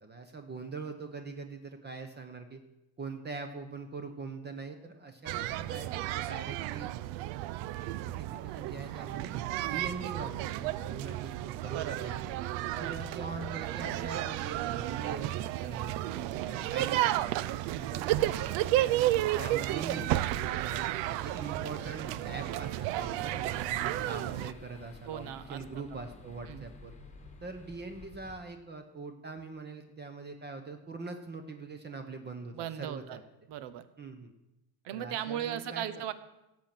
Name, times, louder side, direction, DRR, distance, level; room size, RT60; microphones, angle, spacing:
voice 1, 0.0-2.6 3.0-6.9 7.9-9.3 9.6-12.3 12.7-17.3 17.7-20.1 20.6-26.9 27.4-33.2 34.0-34.3 34.9-35.8, right 4 dB, 25° right, 6 dB, 1.0 m, -42 dB
sound 1, 5.3-24.5, right 14 dB, 85° right, 0.7 m, -32 dB
voice 2, 11.7-12.1 12.8-13.0 17.7-17.9 25.1-25.8 26.5-26.7 32.5-33.2 33.5-33.9 34.8-36.1, right 10 dB, 65° right, 13 dB, 1.1 m, -38 dB
sound 2, 20.1-28.4, left 3 dB, 15° left, 1.4 m, -52 dB
17.0 x 7.5 x 6.0 m, 0.94 s
cardioid pair, 145°, 45 cm